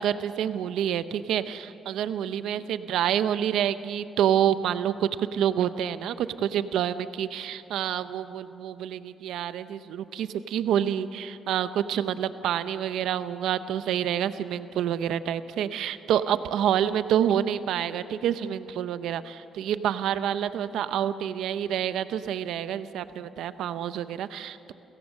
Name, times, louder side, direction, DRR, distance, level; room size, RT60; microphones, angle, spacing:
voice 1, 0.0-24.7, right 10 dB, 80° right, 12 dB, 0.7 m, -28 dB
29.0 x 17.0 x 6.5 m, 2.8 s
cardioid pair, 90°, 0 cm